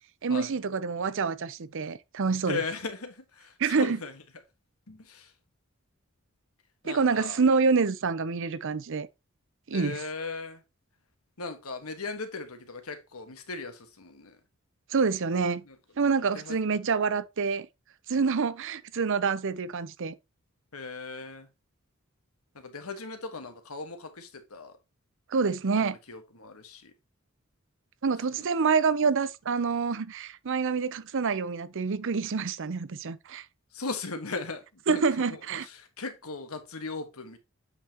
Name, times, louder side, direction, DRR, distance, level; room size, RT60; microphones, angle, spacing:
voice 1, 0.2-2.6 3.6-4.0 6.8-9.1 9.7-10.0 14.9-15.6 16.0-17.7 18.1-20.2 25.3-26.0 28.0-33.4 34.9-35.7, right 5 dB, 60° right, 0.6 m, -27 dB
voice 2, 2.5-4.1 4.9-5.3 6.8-7.4 9.7-10.6 11.4-14.4 15.7-15.8 16.3-16.6 20.7-21.5 22.5-24.7 25.8-26.9 33.7-35.0 35.3-37.4, left 3 dB, 85° left, 1.5 m, -38 dB
8.2 x 5.7 x 2.9 m
head